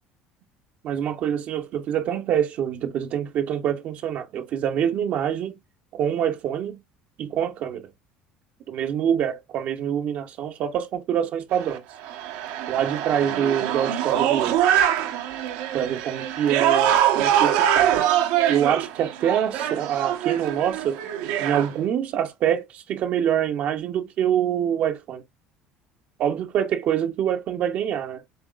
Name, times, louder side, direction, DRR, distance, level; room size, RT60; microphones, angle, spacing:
voice 1, 0.8-5.6 5.9-6.8 7.2-7.9 8.7-11.8 12.7-14.6 15.7-17.9 18.5-21.0 21.4-25.2 26.2-28.2, right 9 dB, 55° right, 0.8 m, -25 dB
sound 1, 11.5-21.7, right 10 dB, 80° right, 1.1 m, -23 dB
7.7 x 2.9 x 2.4 m
cardioid pair, 120°, 3 cm